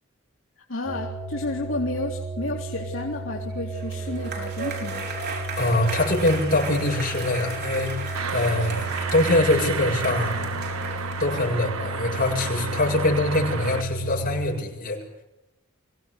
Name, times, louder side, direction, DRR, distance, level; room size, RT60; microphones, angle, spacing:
voice 1, 0.7-5.1, left 2 dB, 70° left, -1 dB, 3.0 m, -31 dB
sound 1, 0.9-14.5, right 2 dB, 15° right, 4.4 m, -33 dB
sound 2, 3.6-11.5, right 4 dB, 55° right, 6.1 m, -35 dB
voice 2, 5.6-10.5 11.2-15.0, left 2 dB, 45° left, 0 dB, 7.4 m, -24 dB
sound 3, 8.1-13.8, right 5 dB, 85° right, 1.3 m, -32 dB
25.0 x 17.5 x 8.2 m, 0.92 s
head